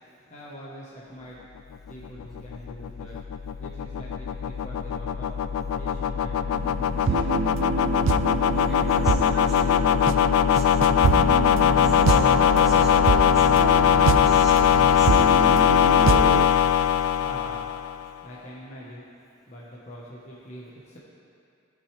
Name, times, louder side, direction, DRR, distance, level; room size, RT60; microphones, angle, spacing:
voice 1, 0.3-1.4 1.9-3.2 3.6-5.3 5.8-6.4 6.9-7.4 17.0-17.6 18.2-19.0 19.5-21.0, equal, 35° left, -6 dB, 1.1 m, -43 dB
sound 1, 1.9-18.1, left 8 dB, 90° left, 0.3 m, -21 dB
sound 2, 6.5-16.5, right 5 dB, 65° right, 0.3 m, -27 dB
voice 2, 8.5-11.1 11.6-15.1, equal, ahead, -9 dB, 1.5 m, -41 dB
16.0 x 6.3 x 3.3 m, 2.5 s
head